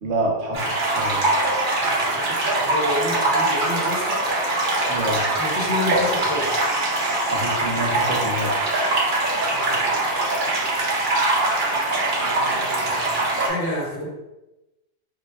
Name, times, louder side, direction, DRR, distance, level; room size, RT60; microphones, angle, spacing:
voice 1, 0.0-1.3 4.9-5.3 7.3-8.5, right 1 dB, 90° right, 0 dB, 1.0 m, -27 dB
sound 1, 0.5-13.5, right 2 dB, 55° right, 0.9 m, -22 dB
voice 2, 1.8-4.3 5.4-6.7 9.5-9.9 12.2-14.1, left 1 dB, 45° left, -6 dB, 1.1 m, -30 dB
3.1 x 3.0 x 2.3 m, 0.98 s
omnidirectional pair, 1.1 m